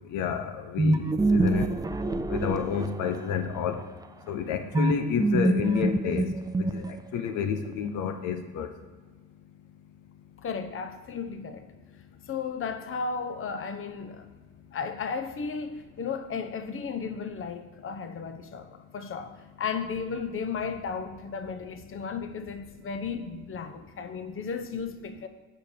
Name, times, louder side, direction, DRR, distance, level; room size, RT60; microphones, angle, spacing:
voice 1, 0.1-1.7 2.3-3.8 4.3-6.3 6.6-8.7, left 7 dB, 90° left, 0.8 m, -30 dB
sound 1, 0.8-3.3 4.7-7.2, right 2 dB, 10° right, 0.5 m, -25 dB
voice 2, 10.4-11.7 12.3-14.3 14.7-25.3, left 5 dB, 45° left, 0.8 m, -34 dB
7.8 x 4.7 x 6.7 m
cardioid pair, 90°, 30 cm